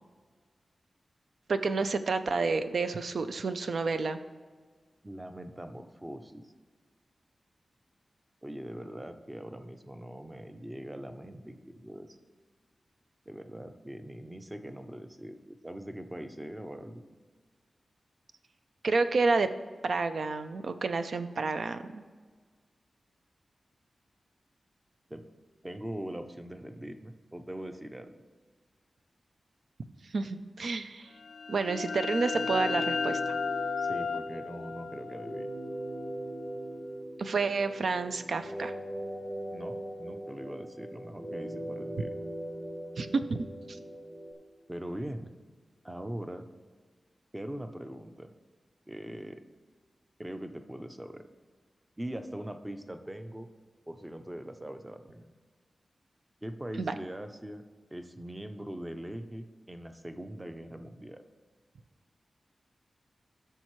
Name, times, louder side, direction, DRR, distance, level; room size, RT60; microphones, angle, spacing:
voice 1, 1.5-4.2 18.8-19.5 19.8-22.1 30.0-31.1 31.5-33.4 37.2-38.7 43.0-43.8 56.8-56.9, right 4 dB, 65° right, 10 dB, 0.5 m, -30 dB
voice 2, 5.0-6.5 8.4-12.2 13.3-17.0 25.1-25.2 25.6-28.2 33.8-35.5 39.5-42.1 44.7-45.3 45.8-46.5 47.3-48.3 48.9-49.4 50.2-51.3 52.0-53.5 53.9-55.3 56.4-57.6 57.9-61.2, right 1 dB, 15° right, 8 dB, 0.6 m, -41 dB
sound 1, 31.2-36.7, left 5 dB, 70° left, 0.3 m, -35 dB
sound 2, 32.3-44.3, right 1 dB, 40° right, 1.8 m, -40 dB
14.5 x 6.6 x 3.1 m, 1.5 s
wide cardioid pair, 130°, 0 cm